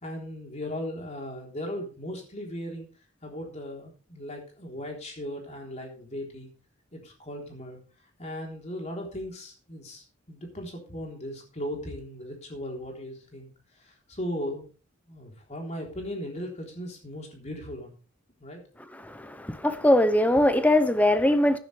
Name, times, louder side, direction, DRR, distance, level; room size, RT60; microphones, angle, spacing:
voice 1, 0.0-2.9 3.2-6.5 6.9-7.8 8.2-13.5 13.8-14.7 15.1-17.9 18.4-18.6, equal, 35° left, 3.7 m, -37 dB
voice 2, 18.9-21.6, left 1 dB, 5° left, 0.9 m, -22 dB
14.5 x 10.0 x 3.4 m
head